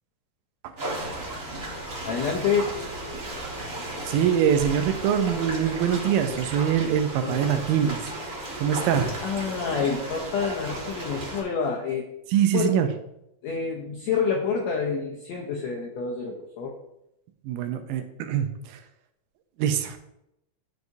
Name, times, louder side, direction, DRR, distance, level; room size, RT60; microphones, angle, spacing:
sound 1, 0.8-11.4, right 1 dB, 40° right, 1.1 m, -34 dB
voice 1, 2.0-2.7 7.2-7.6 9.2-12.1 12.5-12.7 13.4-16.8, left 6 dB, 90° left, 0 dB, 1.5 m, -28 dB
voice 2, 4.1-8.2 8.6-9.1 12.3-12.9 17.4-18.8 19.6-20.0, right 9 dB, 90° right, 8 dB, 2.4 m, -24 dB
11.0 x 4.8 x 2.6 m, 0.84 s
omnidirectional pair, 4.0 m